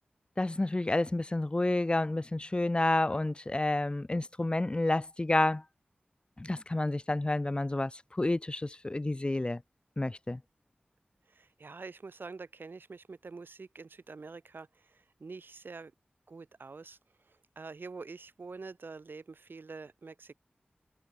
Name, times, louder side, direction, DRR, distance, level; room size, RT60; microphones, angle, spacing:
voice 1, 0.4-5.6 6.4-9.6 10.0-10.4, left 2 dB, 30° left, 0.9 m, -30 dB
voice 2, 11.3-15.9 16.3-20.3, right 4 dB, 80° right, 3.1 m, -46 dB
wide cardioid pair, 80°, 4 cm